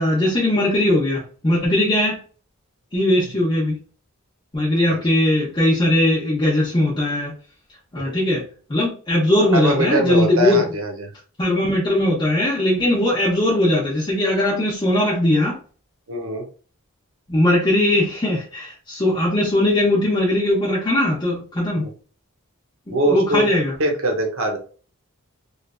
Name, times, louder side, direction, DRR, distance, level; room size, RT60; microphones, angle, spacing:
voice 1, 0.0-2.2 2.9-3.8 4.5-7.3 7.9-8.4 8.7-10.6 11.4-15.6 17.3-21.8 23.1-23.7, left 1 dB, 20° left, -6 dB, 0.7 m, -19 dB
voice 2, 9.5-11.1 16.1-16.5 21.7-21.9 22.9-23.5 23.8-24.6, right 1 dB, 65° right, 2 dB, 0.8 m, -22 dB
3.1 x 2.4 x 2.3 m, 0.39 s
head